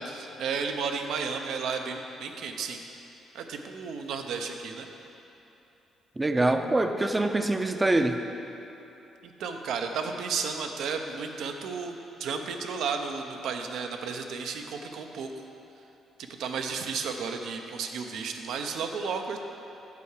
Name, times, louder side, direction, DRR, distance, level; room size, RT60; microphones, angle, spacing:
voice 1, 0.1-2.8 3.3-4.9 9.2-15.3 16.2-19.4, right 5 dB, 80° right, 4 dB, 0.7 m, -33 dB
voice 2, 6.2-8.2, right 2 dB, 15° right, 6 dB, 0.5 m, -24 dB
8.3 x 4.6 x 6.6 m, 2.9 s
cardioid pair, 90°, 0 cm